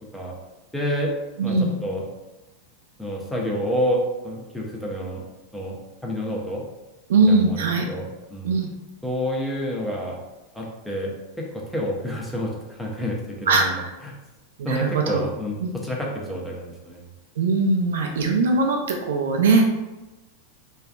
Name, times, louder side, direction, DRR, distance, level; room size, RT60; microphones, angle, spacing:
voice 1, 0.7-1.1 1.4-2.0 3.0-5.8 6.0-6.6 7.3-8.5 9.0-10.2 10.5-14.1 14.6-15.6 15.8-17.0, equal, 5° left, -3 dB, 0.7 m, -29 dB
voice 2, 1.4-1.7 7.1-7.9 8.4-8.7 13.5-13.9 14.6-15.3 15.6-15.7 17.4-19.7, right 3 dB, 60° right, 2 dB, 0.4 m, -20 dB
3.3 x 2.3 x 2.2 m, 1.1 s
figure-of-eight pair, 90°, 0 cm